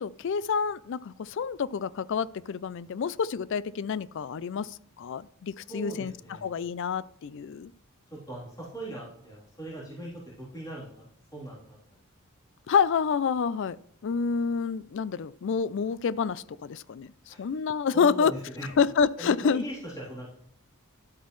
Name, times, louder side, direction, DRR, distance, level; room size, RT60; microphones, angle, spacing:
voice 1, 0.0-6.1 6.4-7.7 12.7-13.8 14.0-18.3 18.8-19.6, left 6 dB, 55° left, 19 dB, 0.4 m, -28 dB
voice 2, 5.7-6.5 8.1-11.6 17.3-17.6 17.9-18.7 19.2-20.3, right 1 dB, 15° left, -6 dB, 3.3 m, -40 dB
12.0 x 8.2 x 3.1 m, 0.70 s
head